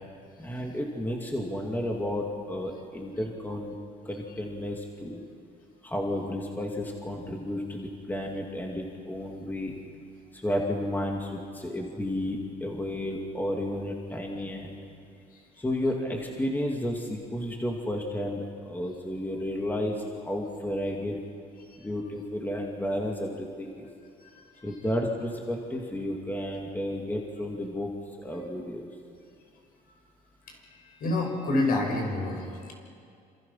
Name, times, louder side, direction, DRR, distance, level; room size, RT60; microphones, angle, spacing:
voice 1, 0.4-3.8 4.0-5.2 5.8-9.8 10.3-14.7 15.6-21.2 21.8-23.9 24.6-27.9 28.2-28.9, left 1 dB, 10° left, 0 dB, 2.8 m, -32 dB
voice 2, 31.0-32.7, left 2 dB, 60° left, 2 dB, 6.3 m, -28 dB
28.0 x 27.0 x 5.9 m, 2.4 s
cardioid pair, 110°, 17 cm